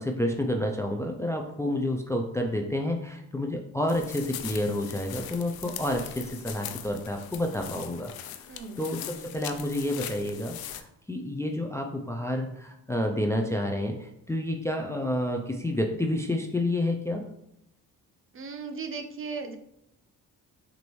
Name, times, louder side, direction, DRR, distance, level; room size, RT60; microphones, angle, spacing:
voice 1, 0.0-8.1 8.8-17.2, left 1 dB, 10° left, 2 dB, 0.4 m, -29 dB
sound 1, 3.9-10.8, left 10 dB, 85° left, 0.5 m, -40 dB
voice 2, 8.5-8.9 18.3-19.6, right 4 dB, 35° right, 5 dB, 0.6 m, -37 dB
6.1 x 2.6 x 3.1 m, 0.79 s
cardioid pair, 90°, 35 cm